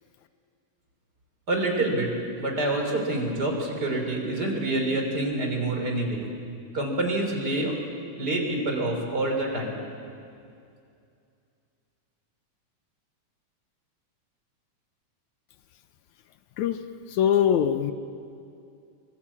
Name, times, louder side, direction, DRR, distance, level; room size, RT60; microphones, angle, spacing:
voice 1, 1.5-6.3 6.7-7.8 8.2-9.8, right 2 dB, 30° right, 2 dB, 3.9 m, -27 dB
voice 2, 17.1-17.9, left 9 dB, 80° left, 10 dB, 2.1 m, -22 dB
23.5 x 21.5 x 8.6 m, 2.4 s
omnidirectional pair, 3.5 m